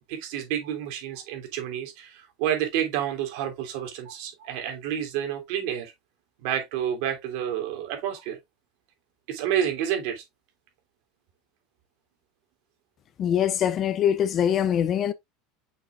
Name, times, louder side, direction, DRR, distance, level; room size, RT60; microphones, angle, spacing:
voice 1, 0.1-5.9 6.4-8.4 9.3-10.2, right 10 dB, 65° right, 2.8 m, -29 dB
voice 2, 13.2-15.1, left 9 dB, 30° left, 0.6 m, -23 dB
6.4 x 6.0 x 2.5 m
supercardioid pair, 150°, 0 cm